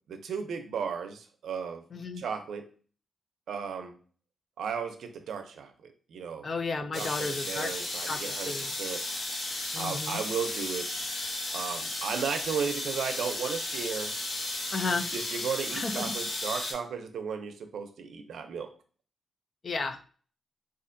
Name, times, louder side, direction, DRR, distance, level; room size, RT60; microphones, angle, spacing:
voice 1, 0.1-1.8 2.2-2.7 3.5-4.0 4.6-6.5 6.9-9.1 9.8-10.9 11.5-14.2 15.1-18.7, right 6 dB, 85° right, 6 dB, 0.5 m, -35 dB
voice 2, 1.9-2.2 6.4-7.7 8.1-8.7 9.7-10.2 14.7-15.1 15.7-16.1 19.6-20.0, left 4 dB, 40° left, 8 dB, 0.3 m, -33 dB
sound 1, 6.9-16.7, left 2 dB, 70° left, 0.9 m, -34 dB
4.3 x 2.4 x 2.5 m, 0.42 s
wide cardioid pair, 175°, 0 cm